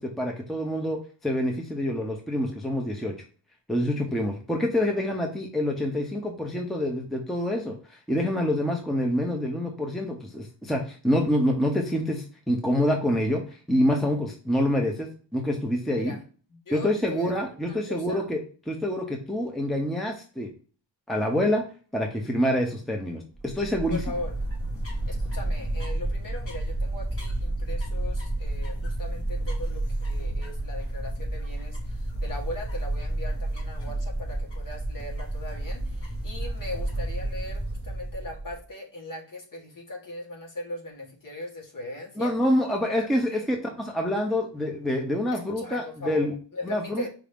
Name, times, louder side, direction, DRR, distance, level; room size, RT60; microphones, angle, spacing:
voice 1, 0.0-3.1 3.7-16.2 16.7-18.4 18.7-20.5 21.1-21.6 21.9-24.0 42.2-43.6 43.9-46.3 46.6-47.0, left 1 dB, ahead, 2 dB, 0.6 m, -26 dB
voice 2, 16.5-17.4 17.7-18.3 23.9-24.4 25.0-42.3 42.9-43.4 45.3-46.3 46.5-47.1, left 1 dB, 45° left, -1 dB, 1.4 m, -39 dB
sound 1, 23.3-38.6, right 1 dB, 30° left, 1.5 m, -31 dB
4.9 x 2.7 x 3.4 m, 0.38 s
wide cardioid pair, 155°, 45 cm